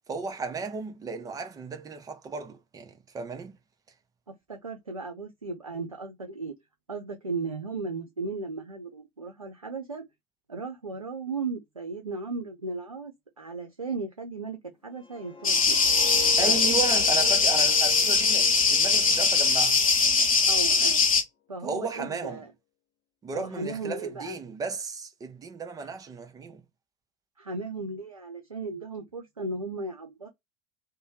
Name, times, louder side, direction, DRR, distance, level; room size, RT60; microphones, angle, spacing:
voice 1, 0.1-3.5 16.4-19.8 21.6-22.4 23.2-26.6, right 4 dB, 20° right, 0.7 m, -34 dB
voice 2, 4.3-6.5 6.9-10.0 10.5-15.8 16.4-17.4 20.5-21.0 21.5-22.5 23.3-24.4 25.8-25.9 27.4-30.3, right 3 dB, 85° right, 0.5 m, -36 dB
sound 1, 15.0-20.0 20.4-20.7, left 12 dB, 30° left, 0.6 m, -41 dB
sound 2, 15.4-21.2, left 4 dB, 80° left, 0.6 m, -21 dB
2.6 x 2.1 x 3.0 m
figure-of-eight pair, 75°, 17 cm